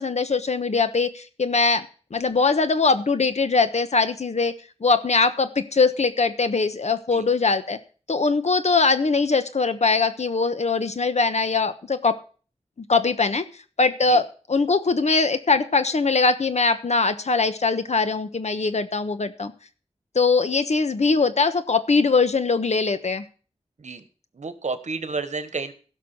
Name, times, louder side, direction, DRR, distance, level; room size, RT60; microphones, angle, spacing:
voice 1, 0.0-4.5 4.8-7.8 8.1-12.2 12.9-13.4 13.8-19.5 20.1-23.2, left 4 dB, 70° left, 11 dB, 1.1 m, -21 dB
voice 2, 24.3-25.7, right 4 dB, 75° right, 11 dB, 1.3 m, -31 dB
16.0 x 6.1 x 6.0 m, 0.39 s
wide cardioid pair, 80°, 12 cm